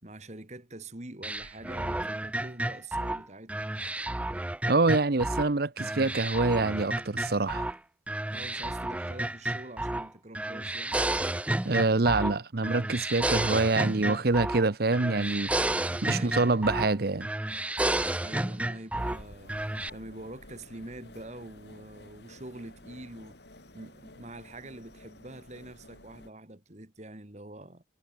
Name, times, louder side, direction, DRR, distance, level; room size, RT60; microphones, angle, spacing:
voice 1, 0.0-3.7 8.3-11.1 15.9-16.7 18.2-19.6 19.9-23.4 23.7-27.8, right 1 dB, 35° right, 2.3 m, -45 dB
sound 1, 1.2-5.5 5.8-7.8 8.1-10.1 10.3-12.4 12.6-14.7 14.9-16.9 17.2-19.2 19.5-19.9, right 1 dB, 5° right, 0.3 m, -31 dB
voice 2, 4.7-7.7 11.6-15.5 16.0-17.3, right 3 dB, 55° right, 0.8 m, -26 dB
sound 2, 19.0-26.3, left 1 dB, 60° left, 6.6 m, -52 dB
head